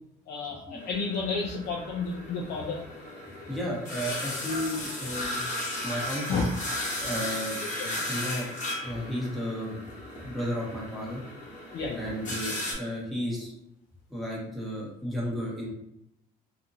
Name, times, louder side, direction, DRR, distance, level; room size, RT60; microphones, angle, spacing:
voice 1, 0.3-2.8 6.3-6.5 7.8-7.9 11.7-12.1, left 4 dB, 70° left, -1 dB, 0.5 m, -31 dB
sound 1, 0.8-12.7, left 1 dB, 45° left, 1.0 m, -36 dB
voice 2, 3.5-5.4 5.8-6.5 7.0-7.6 8.1-8.5 8.8-9.7 10.2-11.2 11.9-13.5 14.1-15.7, equal, ahead, -5 dB, 1.2 m, -33 dB
2.7 x 2.6 x 2.6 m, 0.78 s
cardioid pair, 110°, 17 cm